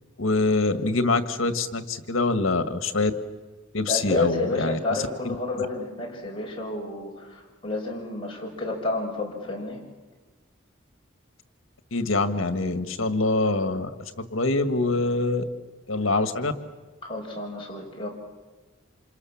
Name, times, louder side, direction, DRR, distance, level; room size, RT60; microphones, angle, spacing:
voice 1, 0.2-3.1 3.7-5.7 11.9-13.9 14.2-15.4 15.9-16.5, left 3 dB, 85° left, 9 dB, 1.8 m, -25 dB
voice 2, 3.9-9.8 17.0-18.1, left 2 dB, 25° left, -2 dB, 6.2 m, -30 dB
28.5 x 27.0 x 7.3 m, 1.2 s
head